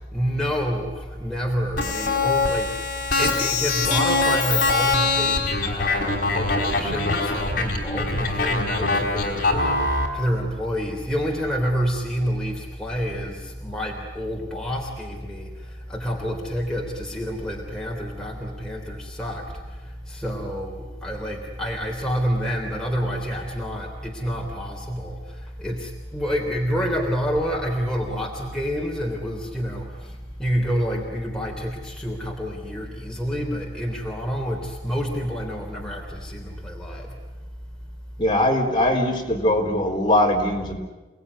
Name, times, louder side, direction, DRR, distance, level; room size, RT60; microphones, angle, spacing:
voice 1, 0.1-37.1, equal, 5° left, -1 dB, 3.3 m, -28 dB
sound 1, 1.8-10.1, left 3 dB, 55° left, 5.2 m, -23 dB
voice 2, 38.2-40.8, left 1 dB, 30° left, 0 dB, 4.2 m, -21 dB
29.5 x 19.5 x 9.8 m, 1.2 s
head